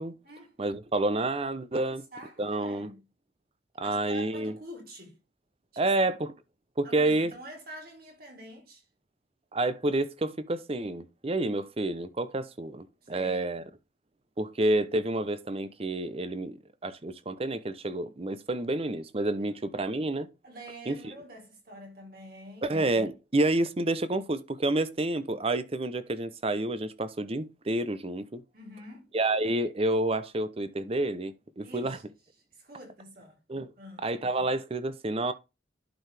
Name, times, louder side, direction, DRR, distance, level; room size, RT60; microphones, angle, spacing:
voice 1, 0.6-2.0 2.4-2.9 3.8-4.5 5.8-6.3 6.8-7.3 9.5-13.6 14.4-16.6 16.8-20.3 20.9-21.0 22.6-28.4 29.1-32.0 33.5-33.7 34.0-35.3, right 2 dB, 30° right, 0.7 m, -29 dB
voice 2, 1.7-3.0 3.8-5.2 5.7-6.1 6.8-8.9 13.0-13.7 19.4-19.6 20.4-22.7 28.5-29.1 31.6-32.0 32.5-33.4 33.8-34.1, equal, 50° right, 3.6 m, -47 dB
11.5 x 4.7 x 3.3 m
head